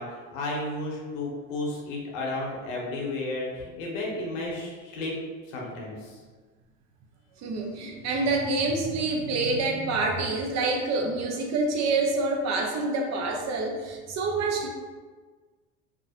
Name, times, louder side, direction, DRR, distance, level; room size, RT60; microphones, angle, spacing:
voice 1, 0.0-5.1 5.5-6.2, left 2 dB, 85° left, -2 dB, 0.8 m, -33 dB
voice 2, 7.4-14.7, right 3 dB, 45° right, 1 dB, 0.5 m, -27 dB
2.4 x 2.0 x 2.7 m, 1.4 s
supercardioid pair, 100°, 38 cm